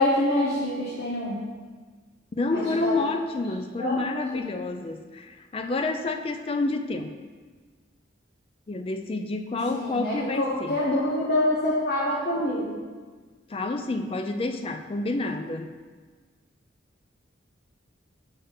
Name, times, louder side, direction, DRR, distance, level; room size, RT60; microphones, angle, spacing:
voice 1, 0.0-1.4 2.5-2.9 3.8-4.0 9.7-12.8, left 1 dB, 50° left, -7 dB, 1.0 m, -26 dB
voice 2, 2.3-7.1 8.7-10.8 13.5-15.7, left 2 dB, 30° left, 8 dB, 0.3 m, -29 dB
6.8 x 3.6 x 5.6 m, 1.5 s
head